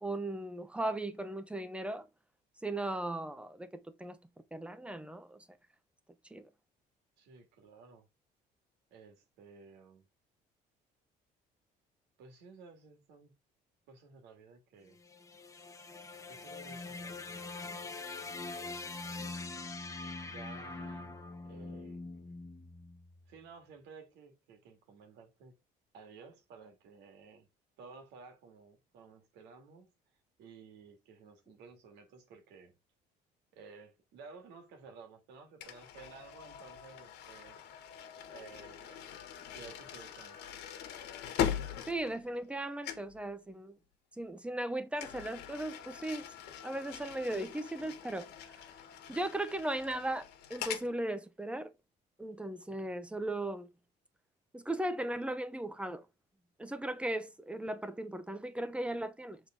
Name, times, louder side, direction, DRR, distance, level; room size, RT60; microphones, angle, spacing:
voice 1, 0.0-2.1 2.6-4.2 4.5-5.5 6.3-6.5 41.9-43.8 44.2-46.3 46.6-48.3 48.6-48.7 49.1-51.7 52.2-53.7 54.5-56.1 56.6-59.4, right 1 dB, 5° right, 0.8 m, -37 dB
voice 2, 7.2-8.1 8.9-10.1 12.2-13.3 13.9-15.0 16.3-18.1 18.5-19.6 20.2-21.2 21.4-22.0 23.3-25.6 25.9-27.5 27.8-29.9 30.4-32.8 33.5-37.9 38.3-39.1 39.4-40.4, right 5 dB, 85° right, 2.1 m, -55 dB
sound 1, 14.9-23.2, left 3 dB, 20° left, 1.0 m, -43 dB
sound 2, 35.6-42.6 42.8-43.2 45.0-50.9, left 9 dB, 80° left, 1.5 m, -41 dB
6.7 x 3.9 x 3.7 m
cardioid pair, 110°, 17 cm